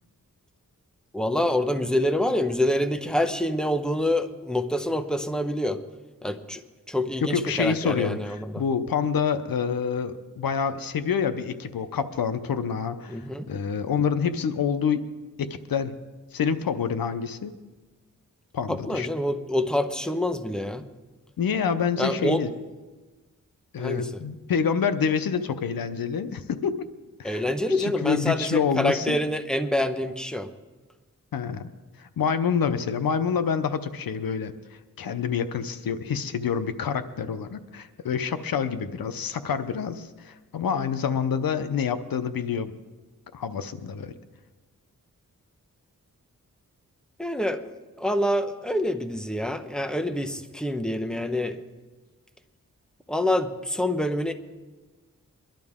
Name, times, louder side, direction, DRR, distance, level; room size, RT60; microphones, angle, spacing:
voice 1, 1.1-5.8 6.2-6.6 6.9-8.6 13.1-13.5 18.7-20.8 22.0-22.4 23.8-24.2 27.2-30.5 47.2-47.7 48.0-51.6 53.1-54.3, left 1 dB, ahead, 8 dB, 1.1 m, -26 dB
voice 2, 7.3-15.1 15.4-15.9 16.3-17.6 18.5-19.1 21.4-22.5 23.7-26.8 27.2-27.4 27.8-29.2 31.3-31.7 32.0-34.5 35.0-42.7 43.3-44.1, left 6 dB, 85° left, 11 dB, 0.8 m, -27 dB
22.5 x 11.5 x 3.6 m, 1.2 s
cardioid pair, 50°, 34 cm